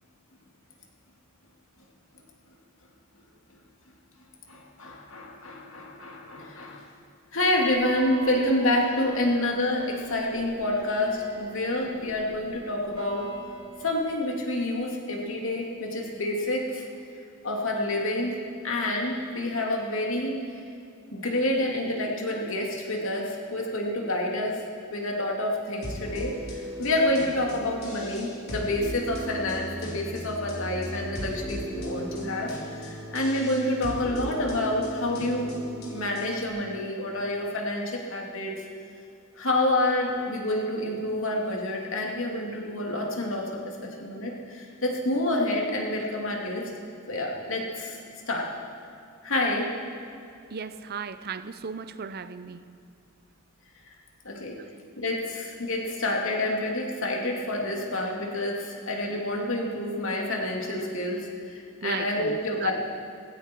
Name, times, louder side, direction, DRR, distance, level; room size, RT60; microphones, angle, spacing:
voice 1, 4.5-6.8 7.3-13.2 13.8-16.8 17.4-18.3 18.6-20.4 21.1-24.6 24.9-35.5 35.9-38.5 39.4-46.7 47.1-48.0 48.3-48.5 49.2-49.7 54.2-54.6 55.0-62.7, left 1 dB, 70° left, -1 dB, 2.7 m, -28 dB
sound 1, 7.7-13.9, right 2 dB, 25° right, 2.6 m, -44 dB
sound 2, 25.8-36.5, right 1 dB, 50° left, 3.7 m, -37 dB
voice 2, 50.5-52.6 61.8-62.7, right 5 dB, 50° right, 13 dB, 0.6 m, -36 dB
16.5 x 15.5 x 4.6 m, 2.5 s
head